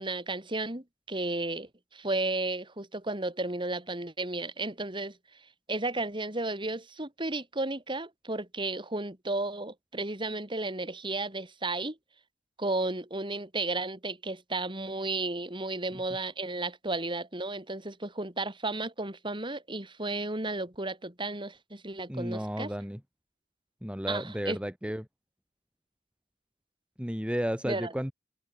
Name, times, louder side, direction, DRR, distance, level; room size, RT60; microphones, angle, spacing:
voice 1, 0.0-5.2 5.7-12.0 12.6-22.7 24.1-24.6 27.6-27.9, right 2 dB, 30° right, 4.3 m, -33 dB
voice 2, 22.1-23.0 23.8-25.1 27.0-28.1, equal, 5° right, 2.7 m, -33 dB
head